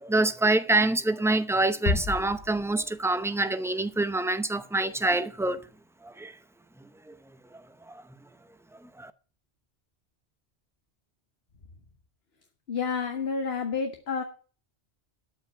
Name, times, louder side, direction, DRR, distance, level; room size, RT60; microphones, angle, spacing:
voice 1, 0.0-5.6 6.0-6.3 9.0-9.1, right 2 dB, 5° right, 0.5 m, -26 dB
Bass drum, 1.9-3.3, left 4 dB, 45° left, 0.9 m, -31 dB
voice 2, 12.7-14.2, left 5 dB, 70° left, 1.5 m, -29 dB
13.0 x 5.4 x 8.7 m
omnidirectional pair, 1.1 m